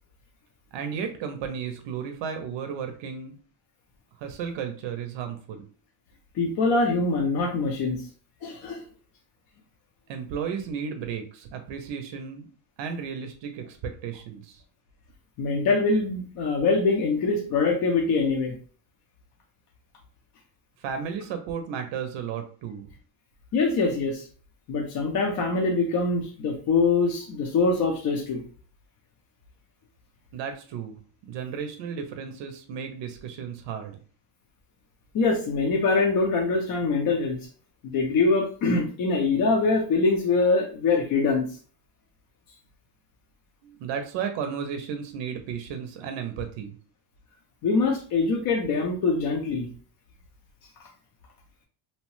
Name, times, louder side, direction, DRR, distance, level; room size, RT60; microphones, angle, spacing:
voice 1, 0.7-3.4 4.2-5.6 10.1-12.5 12.8-14.6 20.8-22.9 30.3-31.0 31.3-34.0 43.6-46.7, right 7 dB, 65° right, 6 dB, 0.6 m, -34 dB
voice 2, 6.4-8.0 8.4-8.8 15.4-18.6 23.5-24.2 24.7-28.4 35.1-37.4 37.8-41.5 47.6-49.7, left 3 dB, 50° left, 1 dB, 0.6 m, -24 dB
2.8 x 2.0 x 3.0 m, 0.42 s
cardioid pair, 135°, 48 cm